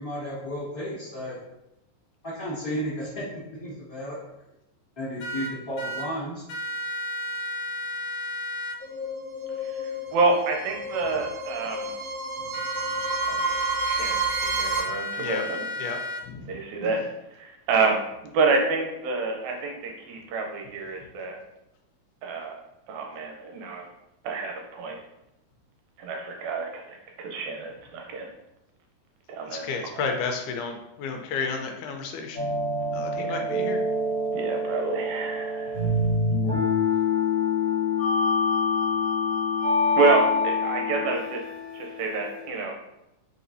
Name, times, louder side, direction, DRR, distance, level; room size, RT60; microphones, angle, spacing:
voice 1, 0.0-1.4 2.2-4.2 4.9-6.4, equal, 25° left, -9 dB, 1.3 m, -33 dB
sound 1, 5.2-6.1 6.5-8.8 12.5-16.2, left 1 dB, 70° left, 1.6 m, -33 dB
sound 2, 8.8-14.8, right 3 dB, 65° right, 1.9 m, -30 dB
voice 2, 9.6-11.9 13.3-13.6 13.9-15.6 16.5-18.0 18.3-21.4 22.2-22.6 22.9-23.8 24.2-25.0 26.0-28.3 29.3-29.8 33.2-33.4 34.3-35.8 40.0-41.4 41.7-42.8, right 4 dB, 80° right, 2 dB, 1.9 m, -28 dB
voice 3, 15.8-16.5 29.5-32.5 32.9-33.8, left 5 dB, 90° left, 4 dB, 2.1 m, -32 dB
sound 3, 32.4-42.5, left 3 dB, 55° left, 1.5 m, -26 dB
4.6 x 4.0 x 2.6 m, 0.87 s
omnidirectional pair, 3.5 m